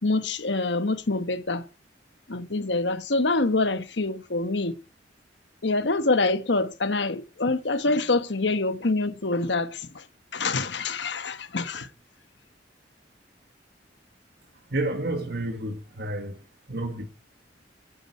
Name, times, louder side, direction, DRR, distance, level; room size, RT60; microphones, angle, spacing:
voice 1, 0.0-1.6 2.3-4.7 5.6-10.0 10.3-11.9, left 3 dB, 75° left, 1.2 m, -26 dB
voice 2, 14.7-16.4 16.7-17.1, right 1 dB, 60° right, 1.5 m, -30 dB
12.0 x 9.0 x 8.3 m
head